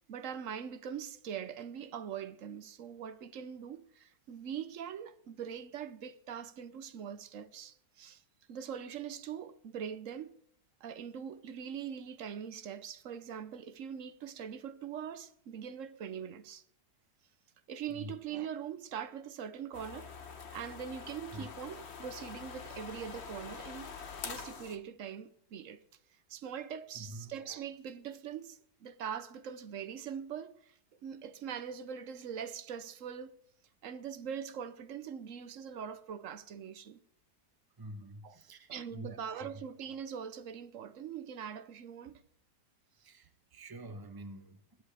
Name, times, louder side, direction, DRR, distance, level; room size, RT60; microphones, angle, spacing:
voice 1, 0.1-8.2 8.5-10.3 10.8-16.6 17.7-20.1 20.5-23.9 24.2-25.8 26.3-33.4 33.8-37.0 38.2-38.4 38.7-42.2, right 8 dB, 55° right, 1.0 m, -42 dB
sound 1, 19.7-24.8, left 6 dB, 45° left, 1.2 m, -45 dB
voice 2, 26.9-27.3 37.8-39.5 42.9-44.8, right 1 dB, 15° right, 1.0 m, -47 dB
22.0 x 11.0 x 3.4 m
omnidirectional pair, 1.8 m